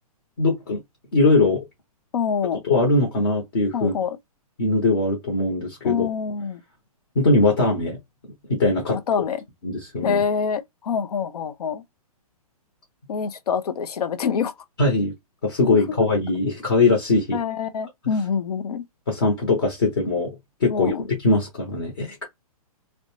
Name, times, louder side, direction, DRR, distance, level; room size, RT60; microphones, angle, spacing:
voice 1, 0.4-0.8 1.1-1.6 2.6-3.9 4.6-6.0 7.2-8.0 8.5-9.0 9.6-10.2 14.8-15.1 15.4-17.4 19.1-20.3 20.6-22.2, left 2 dB, 35° left, 0.8 m, -21 dB
voice 2, 2.1-2.6 3.7-4.2 5.8-6.6 8.9-9.4 10.0-11.8 13.1-14.5 17.3-18.8 20.7-21.0, left 6 dB, 85° left, 0.5 m, -25 dB
2.4 x 2.1 x 3.0 m
hypercardioid pair, 175°, 19 cm